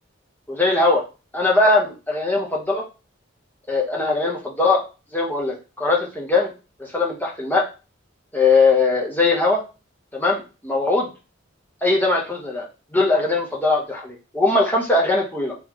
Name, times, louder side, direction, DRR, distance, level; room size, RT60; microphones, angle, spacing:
voice 1, 0.5-1.0 1.3-2.9 3.7-4.8 5.1-6.5 6.9-7.6 8.3-9.6 10.1-11.1 11.8-12.7 12.9-15.5, left 3 dB, 10° left, -1 dB, 1.0 m, -20 dB
3.7 x 3.2 x 3.1 m, 0.30 s
head